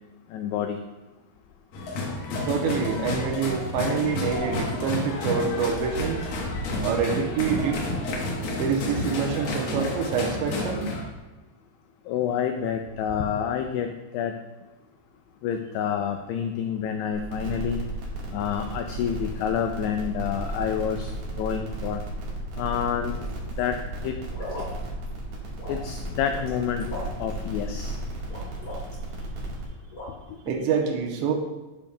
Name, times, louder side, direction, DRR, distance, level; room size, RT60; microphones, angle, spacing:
voice 1, 0.3-0.8 12.1-14.3 15.4-17.8 18.3-21.1 21.4-22.0 22.6-23.2 23.6-23.8 24.0-24.1 24.6-24.7 25.7-26.9 27.2-28.0, left 8 dB, 90° left, 6 dB, 2.3 m, -28 dB
sound 1, 1.7-11.0, left 2 dB, 65° left, 2.5 m, -30 dB
voice 2, 2.5-6.3 6.8-7.8 8.5-10.9 30.5-31.3, right 6 dB, 80° right, 2 dB, 2.9 m, -26 dB
sound 2, 17.1-29.6, right 1 dB, 60° right, 2.9 m, -34 dB
sound 3, 22.9-23.6 24.3-24.7 25.1-25.2 25.6-26.5 26.8-27.3 28.3-29.1 29.9-30.1, left 1 dB, 30° left, 2.0 m, -38 dB
11.5 x 7.0 x 2.3 m, 1.1 s
omnidirectional pair, 5.2 m